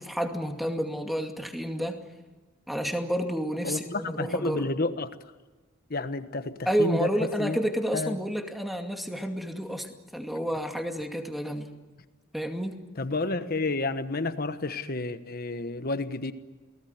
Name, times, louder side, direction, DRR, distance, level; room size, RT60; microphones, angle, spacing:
voice 1, 0.0-2.0 2.7-4.7 6.7-11.7 12.3-12.8, equal, ahead, 2.3 m, -30 dB
voice 2, 3.6-5.2 5.9-7.1 7.4-7.6 7.9-8.2 13.0-16.3, left 3 dB, 45° left, 1.3 m, -30 dB
29.0 x 19.0 x 9.5 m
head